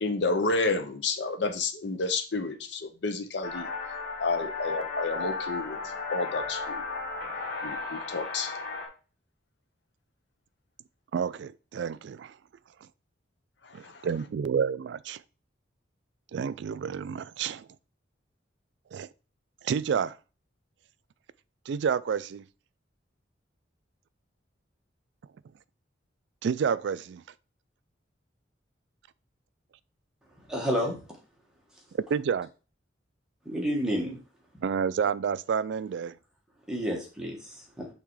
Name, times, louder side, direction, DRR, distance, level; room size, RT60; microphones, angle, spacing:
voice 1, 0.0-3.7 4.2-5.8 6.1-6.8 7.6-8.5 13.7-14.1, left 3 dB, 65° left, 0.7 m, -30 dB
sound 1, 3.4-8.9, left 3 dB, 45° left, 1.7 m, -34 dB
voice 2, 11.1-12.4 12.8-12.9 13.7-15.2 16.3-17.7 18.9-19.1 19.6-20.2 21.7-22.5 26.4-27.2 31.9-32.5 34.6-36.2, right 6 dB, 65° right, 0.3 m, -29 dB
voice 3, 30.5-31.0 33.4-34.2 36.7-37.9, equal, 5° right, 1.4 m, -30 dB
5.9 x 3.5 x 4.7 m
head